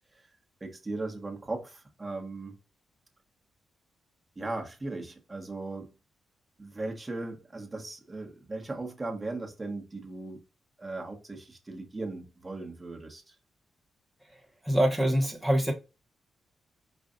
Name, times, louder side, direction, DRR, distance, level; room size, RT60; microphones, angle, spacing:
voice 1, 0.6-2.6 4.4-5.9 6.6-10.4 10.8-13.2, right 2 dB, 20° right, 1.1 m, -37 dB
voice 2, 14.6-15.7, equal, 5° left, 0.9 m, -24 dB
5.2 x 2.4 x 3.7 m
cardioid pair, 135°, 0 cm